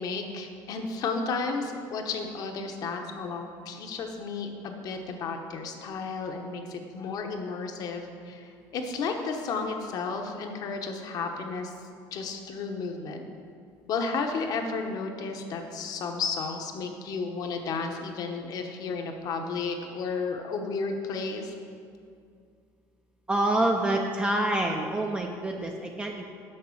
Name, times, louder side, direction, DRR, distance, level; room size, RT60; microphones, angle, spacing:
voice 1, 0.0-11.7 12.1-13.2 13.9-21.5, left 4 dB, 50° left, 4 dB, 0.9 m, -33 dB
voice 2, 23.3-26.2, right 1 dB, 15° right, 2 dB, 0.5 m, -27 dB
6.5 x 5.4 x 7.1 m, 2.3 s
cardioid pair, 135°, 8 cm